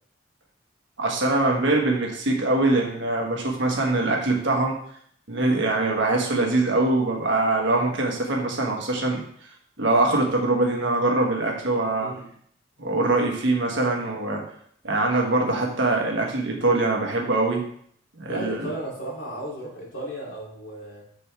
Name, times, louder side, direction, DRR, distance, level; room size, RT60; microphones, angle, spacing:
voice 1, 1.0-4.7 5.3-9.2 9.8-12.1 12.8-14.4 14.8-17.6 18.2-18.7, right 2 dB, 70° right, 0 dB, 1.4 m, -23 dB
voice 2, 18.3-21.0, right 1 dB, 85° left, -5 dB, 2.8 m, -34 dB
7.0 x 5.3 x 3.4 m, 0.63 s
head